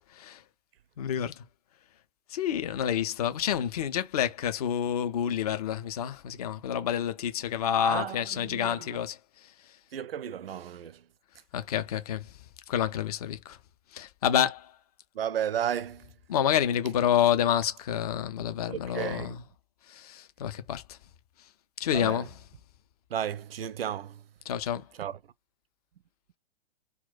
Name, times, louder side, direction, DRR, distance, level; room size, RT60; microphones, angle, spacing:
voice 1, 0.1-0.4 1.0-1.4 2.3-9.2 9.7-9.8 11.5-12.4 12.7-13.6 13.9-14.8 16.3-19.3 19.9-21.0 21.8-22.3 24.5-24.9, left 9 dB, 40° left, 0.5 m, -28 dB
voice 2, 7.8-9.1 9.9-11.1 15.1-16.2 18.7-19.4 21.9-22.3 23.1-24.3 24.9-25.3, right 9 dB, 65° right, 0.4 m, -34 dB
2.2 x 2.1 x 3.8 m
figure-of-eight pair, 115°, 32 cm